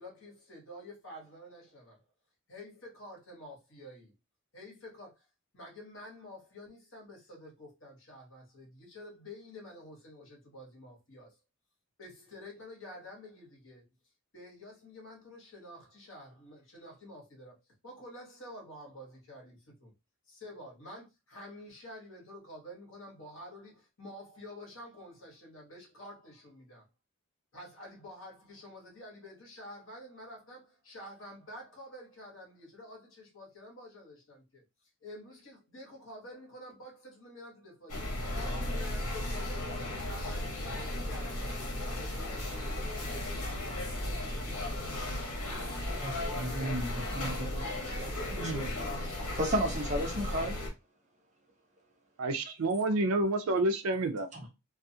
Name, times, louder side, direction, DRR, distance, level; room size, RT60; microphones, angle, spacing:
voice 1, 0.0-2.0 2.5-4.1 4.5-5.2 5.5-11.3 12.0-13.9 14.3-17.6 17.8-19.9 20.3-26.9 27.5-34.6 35.0-42.1, left 1 dB, 60° left, 1.2 m, -49 dB
sound 1, 37.9-50.7, left 1 dB, 80° left, 0.9 m, -35 dB
voice 2, 46.0-50.6 54.3-54.4, equal, 30° right, 0.7 m, -35 dB
voice 3, 48.3-48.8 52.2-54.3, right 2 dB, 75° right, 0.4 m, -29 dB
2.4 x 2.4 x 2.7 m
head